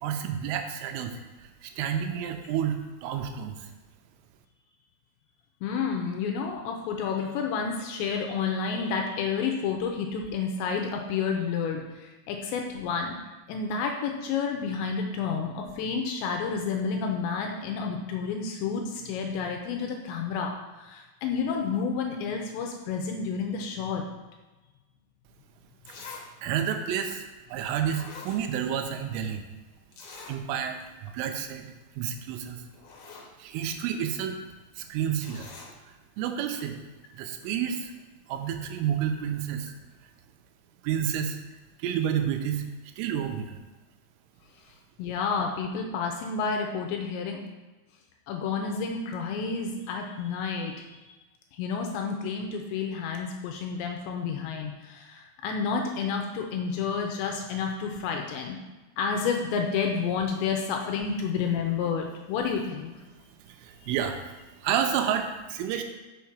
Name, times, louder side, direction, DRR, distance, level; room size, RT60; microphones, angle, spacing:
voice 1, 0.0-3.7 25.9-26.0 26.4-29.4 30.3-32.6 33.4-34.4 34.8-35.5 35.8-36.8 37.1-37.9 38.3-39.7 40.0-40.1 40.8-41.4 41.8-43.6 63.4-65.8, right 9 dB, 85° right, 5 dB, 3.3 m, -30 dB
voice 2, 5.6-13.2 13.5-24.0 45.0-47.4 48.3-51.2 51.5-58.6 59.0-62.9, left 5 dB, 80° left, 2 dB, 2.7 m, -30 dB
Zipper (clothing), 25.3-25.4 25.9-26.3 26.6-26.7 27.5-27.6 27.9-28.9 29.2-29.3 29.9-30.4 30.8-30.9 31.2-31.4 32.3-32.4 32.7-33.3 35.2-35.7 36.6-36.7, left 4 dB, 65° left, 2.1 m, -45 dB
6.4 x 6.2 x 5.8 m, 1.2 s
omnidirectional pair, 5.6 m